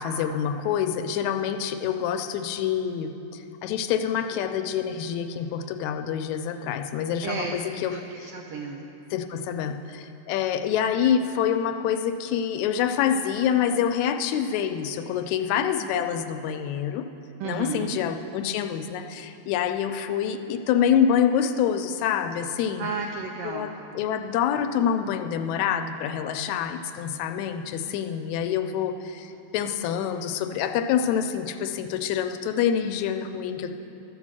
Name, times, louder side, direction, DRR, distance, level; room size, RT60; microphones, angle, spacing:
voice 1, 0.0-8.3 9.1-17.1 17.4-22.9 23.4-23.7 24.0-33.7, left 8 dB, 80° left, 8 dB, 1.9 m, -26 dB
voice 2, 7.2-8.9 17.4-18.0 22.8-23.8, right 4 dB, 85° right, 2 dB, 1.4 m, -33 dB
13.0 x 6.2 x 7.4 m, 2.9 s
omnidirectional pair, 3.3 m